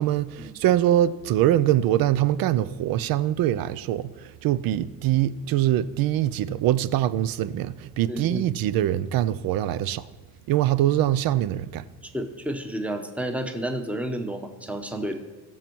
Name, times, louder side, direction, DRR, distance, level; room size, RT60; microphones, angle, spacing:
voice 1, 0.0-10.0 10.5-11.9, right 12 dB, 80° right, 0.6 m, -23 dB
voice 2, 8.1-8.4 12.0-15.2, right 1 dB, 5° right, 0.9 m, -31 dB
21.0 x 7.3 x 4.6 m
cardioid pair, 165°, 35 cm